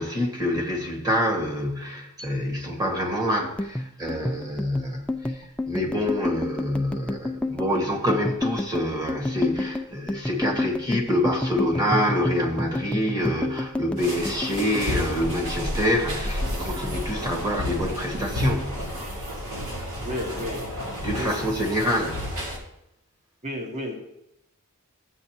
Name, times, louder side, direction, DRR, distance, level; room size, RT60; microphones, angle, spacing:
voice 1, 0.0-18.8 21.0-22.2, left 1 dB, 15° right, 1.6 m, -26 dB
sound 1, 3.4-16.0 16.3-17.3 17.6-18.0 18.3-18.9, left 1 dB, 5° left, 0.3 m, -30 dB
sound 2, 14.0-22.6, left 1 dB, 65° right, 1.9 m, -31 dB
voice 2, 20.0-20.6 21.2-21.3 23.4-24.0, left 1 dB, 35° right, 1.4 m, -31 dB
13.0 x 8.1 x 2.9 m
head